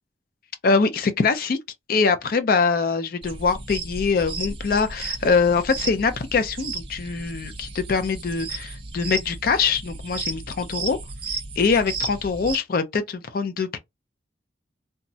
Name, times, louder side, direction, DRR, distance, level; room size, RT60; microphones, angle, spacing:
voice 1, 0.6-1.6 1.9-11.0 11.6-13.8, left 5 dB, 50° left, 0.4 m, -23 dB
sound 1, 3.2-12.6, right 3 dB, 30° right, 0.6 m, -34 dB
3.4 x 2.0 x 2.6 m
head